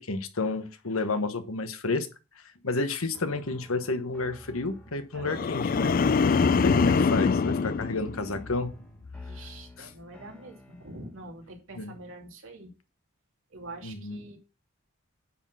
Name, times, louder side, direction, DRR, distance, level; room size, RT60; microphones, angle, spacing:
voice 1, 0.0-2.1 2.6-6.0 6.6-8.7 9.8-9.9 11.7-11.9 13.8-14.2, left 3 dB, 90° left, 9 dB, 1.2 m, -31 dB
sound 1, 3.1-11.2, equal, 5° left, 1.7 m, -52 dB
voice 2, 5.1-5.5 9.2-12.7 13.5-14.4, right 2 dB, 70° right, 1 dB, 2.7 m, -45 dB
sound 2, 5.2-8.7 9.1-9.5, left 5 dB, 45° left, 0.4 m, -24 dB
9.8 x 4.3 x 6.3 m, 0.31 s
head